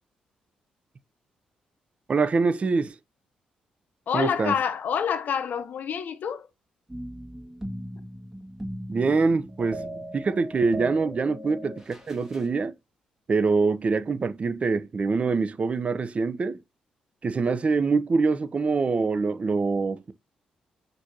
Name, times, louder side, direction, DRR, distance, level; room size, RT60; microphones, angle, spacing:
voice 1, 2.1-3.0 4.1-4.5 8.9-12.7 13.3-16.6 17.2-20.1, right 4 dB, 40° right, 0.6 m, -24 dB
voice 2, 4.1-6.5 9.8-9.9, left 8 dB, 60° left, 0.7 m, -27 dB
sound 1, 6.9-12.5, right 1 dB, 15° right, 1.6 m, -38 dB
6.1 x 2.6 x 2.8 m
hypercardioid pair, 45°, 3 cm